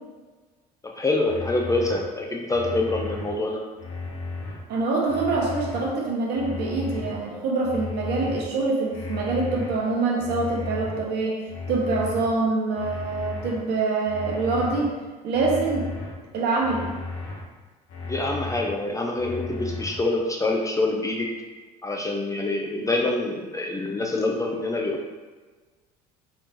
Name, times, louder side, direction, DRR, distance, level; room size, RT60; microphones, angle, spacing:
voice 1, 0.8-3.6 18.0-21.3 21.8-25.1, left 2 dB, 15° left, 0 dB, 0.4 m, -26 dB
sound 1, 1.3-2.0 2.5-3.3 3.8-4.6 5.1-5.8 6.3-7.1 7.6-8.4 8.9-9.7 10.2-11.0 11.5-12.3 12.8-13.5 14.0-14.8 15.3-16.1 16.6-17.4 17.9-18.7 19.2-20.0, left 3 dB, 60° left, 0.7 m, -34 dB
voice 2, 4.7-11.4 11.7-14.9 15.2-15.9 16.3-16.9, right 3 dB, 55° right, -2 dB, 0.9 m, -25 dB
3.2 x 3.1 x 2.6 m, 1.3 s
hypercardioid pair, 65°, 20 cm